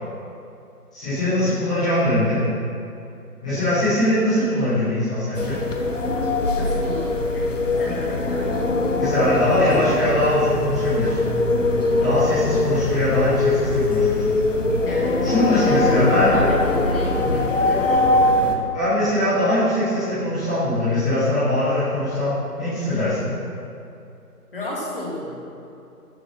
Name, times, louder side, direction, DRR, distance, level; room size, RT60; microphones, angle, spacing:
voice 1, 0.9-2.4 3.4-5.6 9.0-11.2 12.0-14.1 15.2-16.3 18.7-23.3, left 1 dB, 5° left, -17 dB, 1.3 m, -21 dB
sound 1, 5.3-18.5, left 2 dB, 50° left, 1.1 m, -21 dB
voice 2, 6.5-8.5 14.8-18.0 22.7-23.1 24.5-25.4, left 1 dB, 35° left, -5 dB, 2.5 m, -31 dB
11.0 x 5.2 x 5.8 m, 2.7 s
figure-of-eight pair, 160°, 47 cm